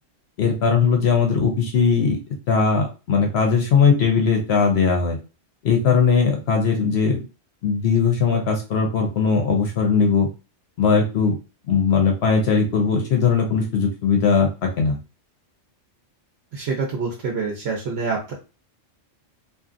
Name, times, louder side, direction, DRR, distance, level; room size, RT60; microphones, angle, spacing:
voice 1, 0.4-2.2 2.5-5.2 5.6-7.2 7.6-10.3 10.8-11.4 11.7-15.0, left 5 dB, 60° left, 2 dB, 0.8 m, -19 dB
voice 2, 16.5-18.3, right 4 dB, 60° right, -1 dB, 0.9 m, -26 dB
2.7 x 2.4 x 2.4 m, 0.31 s
omnidirectional pair, 1.4 m